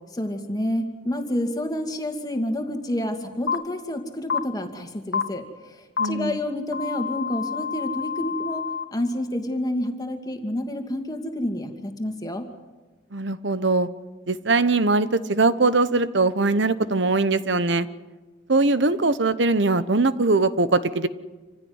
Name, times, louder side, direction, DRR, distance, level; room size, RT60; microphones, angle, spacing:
voice 1, 0.2-8.6 8.9-12.5, left 1 dB, 20° left, 4 dB, 2.3 m, -29 dB
sound 1, 3.5-3.6 4.3-4.4 5.1-5.2 6.0-6.1 6.7-8.8, left 6 dB, 65° left, 1.4 m, -28 dB
voice 2, 6.0-6.4 13.1-13.9 14.3-17.9 18.5-21.1, right 3 dB, 60° right, 14 dB, 1.0 m, -21 dB
27.0 x 16.0 x 9.7 m, 1.2 s
head